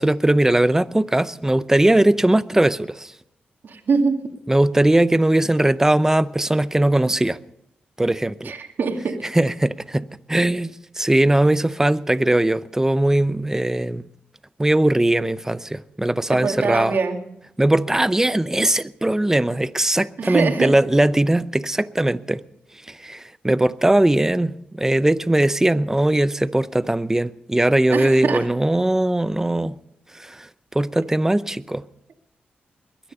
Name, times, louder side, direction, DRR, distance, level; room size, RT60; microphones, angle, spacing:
voice 1, 0.0-3.1 4.5-7.4 8.0-8.5 9.3-14.0 14.6-17.0 17.6-22.4 22.9-29.8 30.1-31.8, right 1 dB, 15° right, 0.6 m, -20 dB
voice 2, 3.6-4.2 8.4-9.3 16.3-17.2 20.2-20.7 27.9-28.4, right 4 dB, 65° right, 2.3 m, -23 dB
22.0 x 10.0 x 5.5 m
cardioid pair, 60°, 4 cm